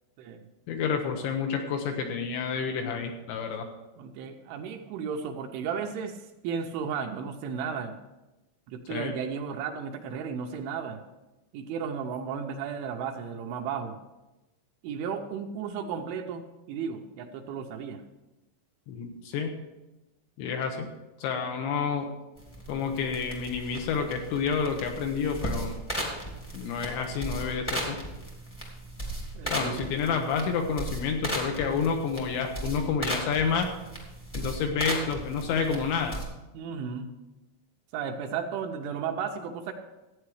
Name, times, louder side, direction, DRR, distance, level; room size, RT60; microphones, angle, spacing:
voice 1, 0.7-3.7 8.9-9.1 18.9-19.5 20.4-20.9 21.2-22.1 22.7-25.7 26.5-28.0 29.5-33.7 34.3-36.2, left 6 dB, 75° left, 4 dB, 2.9 m, -29 dB
voice 2, 4.0-7.9 8.7-11.0 11.5-14.0 14.8-18.0 29.4-29.8 34.6-34.7 36.5-37.1 37.9-39.7, right 6 dB, 80° right, 4 dB, 3.0 m, -34 dB
sound 1, 22.4-36.2, right 1 dB, 15° left, 1.0 m, -36 dB
14.5 x 9.2 x 4.8 m, 1.0 s
omnidirectional pair, 5.9 m